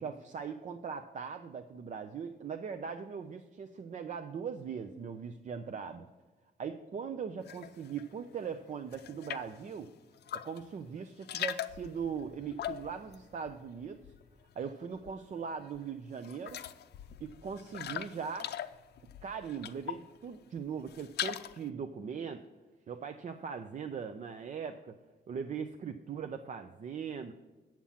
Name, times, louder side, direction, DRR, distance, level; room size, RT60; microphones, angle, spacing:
voice 1, 0.0-6.1 6.6-9.9 10.3-14.0 14.6-16.6 17.2-18.5 19.2-22.5 22.9-24.9 25.3-27.3, right 6 dB, 45° right, 8 dB, 0.5 m, -40 dB
sound 1, 7.4-8.1 8.4-9.6 10.1-10.7 11.0-14.4 14.7-15.4 15.7-15.8 16.2-20.2 20.6-21.7, left 11 dB, 70° left, 0.5 m, -41 dB
8.6 x 7.4 x 5.7 m, 1.2 s
wide cardioid pair, 155°, 18 cm